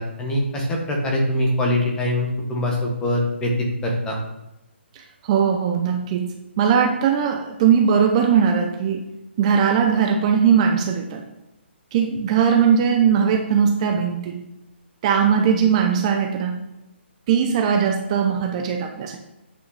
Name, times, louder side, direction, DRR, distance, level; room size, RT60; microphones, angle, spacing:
voice 1, 0.0-4.2, left 1 dB, 10° left, -1 dB, 1.6 m, -23 dB
voice 2, 4.9-6.3 6.6-9.1 9.4-11.2 11.9-14.4 15.0-16.6 17.3-19.2, right 7 dB, 30° right, 3 dB, 0.8 m, -19 dB
8.7 x 5.6 x 4.2 m, 0.92 s
hypercardioid pair, 145°, 7 cm